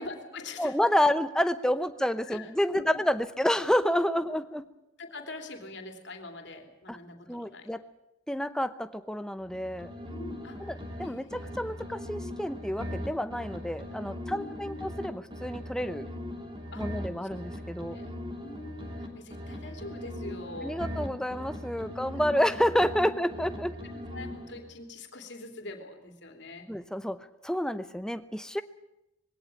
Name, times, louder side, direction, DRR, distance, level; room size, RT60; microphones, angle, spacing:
voice 1, 0.0-1.1 2.3-3.0 5.0-7.7 10.1-11.6 14.3-14.8 15.9-16.0 16.7-17.3 17.9-18.1 18.4-20.8 21.8-21.9 22.2-22.3 23.8-26.7, left 2 dB, 60° left, 5 dB, 3.0 m, -44 dB
voice 2, 0.6-4.7 6.9-7.0 7.3-7.8 8.3-9.9 10.6-16.1 16.8-18.0 20.6-23.8 26.7-27.2 27.4-28.6, equal, 5° left, 11 dB, 0.8 m, -29 dB
sound 1, 9.4-11.1 11.3-15.1 15.3-19.1 19.3-23.1 23.3-24.7, left 1 dB, 25° right, 2.7 m, -39 dB
20.5 x 17.0 x 9.0 m, 0.89 s
head